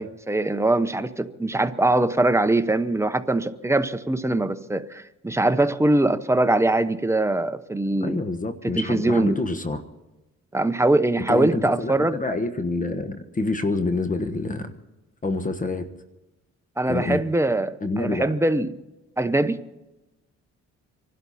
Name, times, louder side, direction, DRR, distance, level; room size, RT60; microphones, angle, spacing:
voice 1, 0.0-8.2 8.6-9.4 10.5-12.2 16.8-18.7 19.2-19.6, right 2 dB, 10° right, 0.9 m, -22 dB
voice 2, 8.0-9.8 11.3-14.7 15.2-15.9 16.9-17.2 17.8-18.3, left 2 dB, 25° left, 1.3 m, -27 dB
26.0 x 12.0 x 4.2 m
cardioid pair, 90°, 30 cm